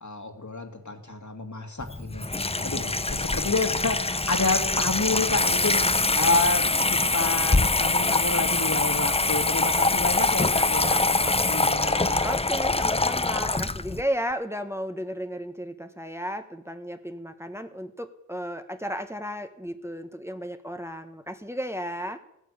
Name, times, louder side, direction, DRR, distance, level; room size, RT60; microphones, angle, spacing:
voice 1, 0.0-6.6 6.9-12.3, left 3 dB, 65° left, 4 dB, 2.1 m, -29 dB
Water tap faucet / Sink (filling or washing), 1.8-14.0, left 3 dB, 20° left, 0.5 m, -24 dB
voice 2, 12.2-22.2, equal, 10° right, 7 dB, 1.2 m, -34 dB
16.0 x 9.2 x 8.4 m, 0.82 s
wide cardioid pair, 40°, 31 cm